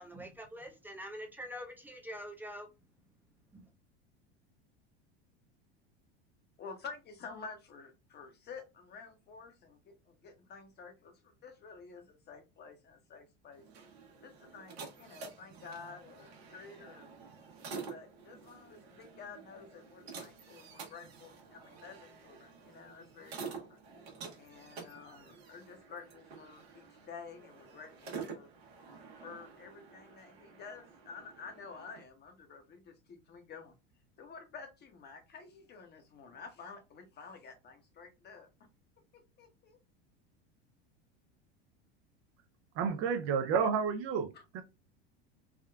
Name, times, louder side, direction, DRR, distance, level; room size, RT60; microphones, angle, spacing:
voice 1, 0.0-2.7 3.5-3.6, equal, 5° right, 0.6 m, -45 dB
voice 2, 6.6-13.6 14.2-17.1 17.8-23.8 24.4-28.5 29.2-33.7 34.2-38.5 39.1-39.8 44.3-44.4, left 5 dB, 30° left, 0.9 m, -50 dB
sound 1, 13.5-32.0, right 5 dB, 75° right, 1.1 m, -49 dB
voice 3, 42.8-44.6, right 6 dB, 45° right, 0.5 m, -31 dB
3.6 x 2.2 x 2.3 m
hypercardioid pair, 90°, 32 cm